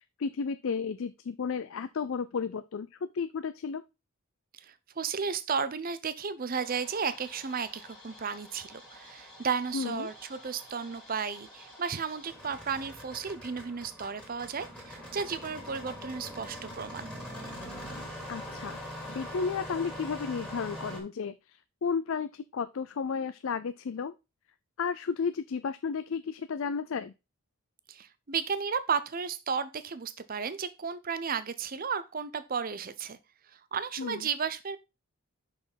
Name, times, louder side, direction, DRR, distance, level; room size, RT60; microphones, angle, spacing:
voice 1, 0.2-3.8 9.7-10.1 18.3-18.8 19.1-24.1 24.8-27.1 34.0-34.3, left 5 dB, 65° left, 0.4 m, -33 dB
voice 2, 4.5-17.1 27.9-33.2 33.5-34.8, right 6 dB, 40° right, 0.6 m, -34 dB
Engine starting, 6.5-21.0, equal, 5° left, 2.3 m, -44 dB
6.2 x 5.7 x 3.9 m
head